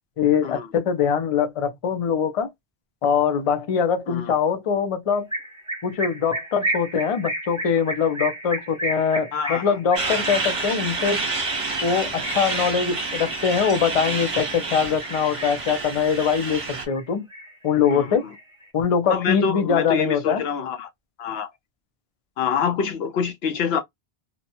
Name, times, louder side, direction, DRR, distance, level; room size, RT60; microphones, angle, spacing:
voice 1, 0.2-2.5 3.0-5.3 5.8-11.2 11.8-17.2 17.6-18.2 18.7-20.4, left 7 dB, 45° left, 0.5 m, -22 dB
sound 1, 5.3-14.6 15.0-15.7 16.1-17.0 17.3-18.6, right 1 dB, 5° right, 0.8 m, -33 dB
voice 2, 9.3-9.8 17.9-18.3 19.1-20.9 21.2-21.5 22.4-23.8, left 7 dB, 75° left, 0.8 m, -26 dB
Truck, 10.0-16.9, right 3 dB, 35° right, 0.8 m, -28 dB
2.7 x 2.2 x 2.7 m
omnidirectional pair, 1.1 m